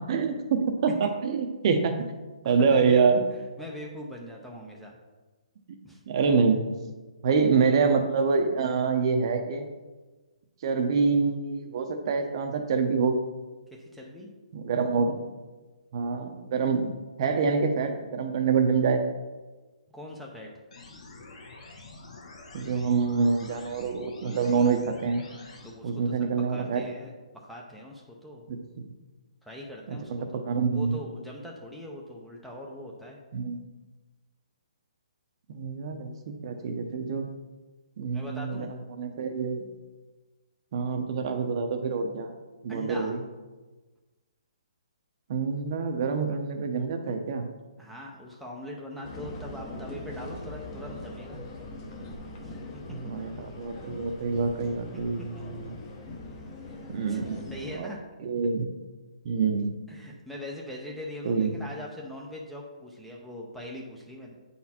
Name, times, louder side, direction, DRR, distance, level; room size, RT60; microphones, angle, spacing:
voice 1, 0.1-2.0 2.4-3.2 6.1-6.6 7.2-9.7 10.6-13.1 14.5-15.1 15.9-16.9 17.2-19.0 22.5-25.2 25.8-26.8 28.5-28.6 29.9-31.0 33.3-33.6 35.5-37.2 38.0-39.7 40.7-42.3 42.6-43.2 45.3-47.5 52.9-55.7 56.9-57.5 57.8-57.9 58.2-58.7 59.2-59.7 61.2-61.5, right 5 dB, 40° right, 6 dB, 0.7 m, -26 dB
voice 2, 2.4-3.2 3.6-5.0 5.8-6.0 13.7-14.3 19.9-20.5 25.6-28.4 29.4-30.1 30.7-33.2 38.1-38.7 42.7-43.1 47.8-51.4 52.4-52.6 55.2-55.3 57.1-57.2 57.5-58.0 59.9-64.4, left 1 dB, ahead, -2 dB, 0.6 m, -41 dB
sound 1, 20.7-25.7, left 3 dB, 60° left, 1.5 m, -47 dB
sound 2, 49.0-57.8, left 2 dB, 25° left, 1.0 m, -41 dB
8.4 x 4.2 x 4.2 m, 1.2 s
hypercardioid pair, 160°, 4 cm